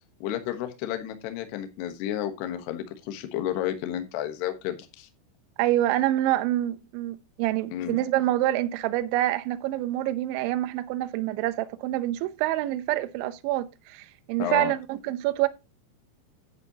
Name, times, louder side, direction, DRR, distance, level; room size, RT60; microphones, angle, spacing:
voice 1, 0.2-5.1 7.7-8.0 14.4-14.7, left 11 dB, 70° left, 2.8 m, -31 dB
voice 2, 5.6-15.5, right 14 dB, 80° right, 2.9 m, -26 dB
11.0 x 9.4 x 2.9 m
omnidirectional pair, 5.9 m